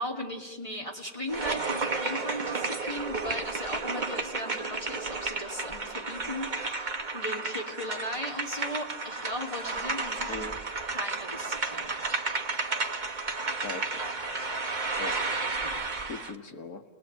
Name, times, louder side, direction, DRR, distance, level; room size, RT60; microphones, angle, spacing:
voice 1, 0.0-10.5 10.9-11.9 15.6-15.8, left 1 dB, 20° left, 0 dB, 3.0 m, -37 dB
sound 1, 1.3-16.4, right 3 dB, 30° right, 1.5 m, -32 dB
voice 2, 10.3-10.6 13.6-14.0 15.0-15.2 15.7-16.8, left 3 dB, 65° left, 5 dB, 2.5 m, -40 dB
29.5 x 20.5 x 9.1 m, 1.2 s
omnidirectional pair, 1.7 m